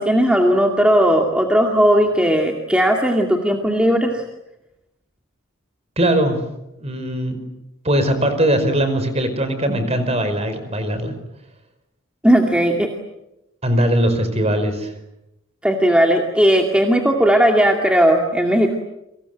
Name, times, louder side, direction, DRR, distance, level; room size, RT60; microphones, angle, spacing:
voice 1, 0.0-4.2 12.2-12.9 15.6-18.8, equal, 5° right, 1 dB, 2.3 m, -16 dB
voice 2, 6.0-6.4 6.8-7.4 7.8-11.1 13.6-14.9, right 1 dB, 30° right, 10 dB, 5.0 m, -20 dB
30.0 x 25.0 x 8.0 m, 0.88 s
head